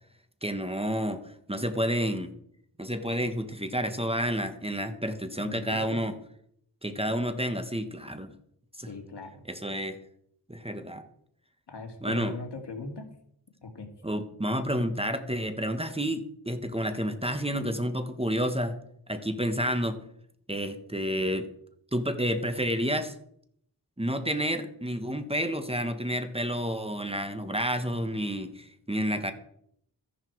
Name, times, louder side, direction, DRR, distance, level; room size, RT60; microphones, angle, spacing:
voice 1, 0.4-1.2 1.5-2.3 2.8-6.1 6.8-8.3 8.8-8.9 9.5-10.0 10.5-11.0 12.0-12.3 14.0-18.7 19.1-20.0 20.5-21.5 21.9-23.1 24.0-29.3, equal, 15° right, 8 dB, 1.3 m, -30 dB
voice 2, 5.4-6.0 8.8-9.4 11.7-13.1 13.6-13.9, left 3 dB, 70° left, 4 dB, 2.4 m, -40 dB
14.0 x 11.0 x 4.7 m, 0.69 s
wide cardioid pair, 65°, 43 cm